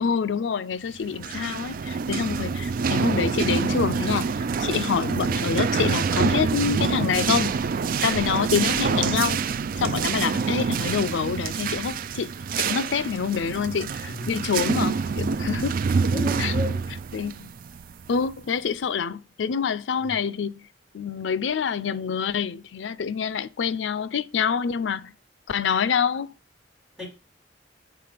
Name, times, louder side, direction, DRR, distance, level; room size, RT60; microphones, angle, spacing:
voice 1, 0.0-4.3 4.6-7.5 7.8-9.4 9.8-12.3 12.6-15.8 16.4-16.5 17.1-17.5 18.1-20.6 20.9-25.1 25.5-26.3, left 6 dB, 85° left, 0.5 m, -26 dB
sound 1, 1.0-18.5, right 5 dB, 50° right, 0.3 m, -26 dB
voice 2, 16.0-17.0 17.3-17.5 20.1-20.2 27.0-27.1, left 1 dB, ahead, 3.5 m, -34 dB
7.6 x 4.0 x 5.0 m
head